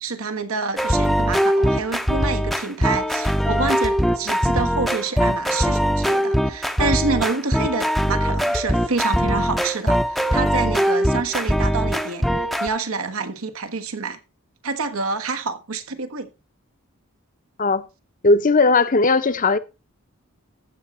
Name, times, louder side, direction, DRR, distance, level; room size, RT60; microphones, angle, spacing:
voice 1, 0.0-12.2 12.6-14.2 14.6-16.3, right 4 dB, 85° right, 1.3 m, -27 dB
sound 1, 0.8-12.7, equal, ahead, 0.6 m, -21 dB
voice 2, 18.2-19.6, left 3 dB, 40° left, 0.7 m, -17 dB
14.5 x 6.4 x 4.2 m
head